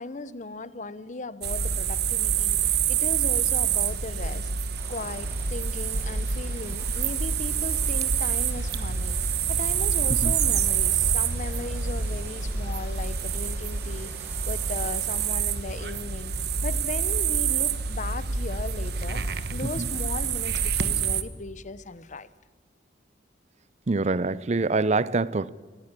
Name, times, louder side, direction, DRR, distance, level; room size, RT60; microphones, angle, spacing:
voice 1, 0.0-4.5 4.9-16.3 16.6-22.3, left 3 dB, 45° left, 1.0 m, -37 dB
sound 1, 1.4-21.2, right 7 dB, 65° right, 1.3 m, -27 dB
Vehicle, 4.8-15.2, right 1 dB, 15° right, 4.9 m, -49 dB
voice 2, 23.9-25.5, right 3 dB, 40° right, 0.6 m, -25 dB
18.0 x 16.5 x 9.8 m
head